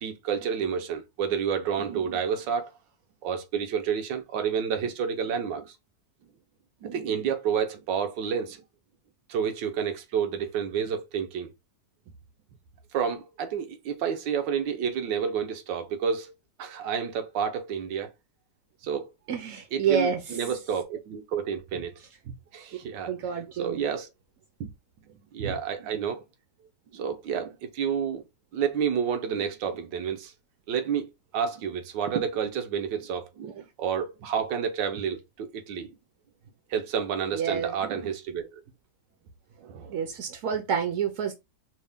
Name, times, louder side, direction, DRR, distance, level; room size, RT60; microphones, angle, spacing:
voice 1, 0.0-2.7 3.2-5.7 6.8-8.6 9.3-11.5 12.9-16.3 16.6-18.1 18.8-19.1 19.7-22.0 22.5-23.1 23.6-24.1 24.6-24.7 25.3-26.2 26.9-28.2 28.5-30.3 30.7-35.9 36.7-38.6 39.6-40.0, right 7 dB, 85° right, 1.5 m, -30 dB
voice 2, 19.3-20.2 23.1-23.8 25.4-25.5 37.3-37.8 39.9-41.3, right 7 dB, 65° right, 0.8 m, -28 dB
5.3 x 2.1 x 3.4 m
omnidirectional pair, 1.9 m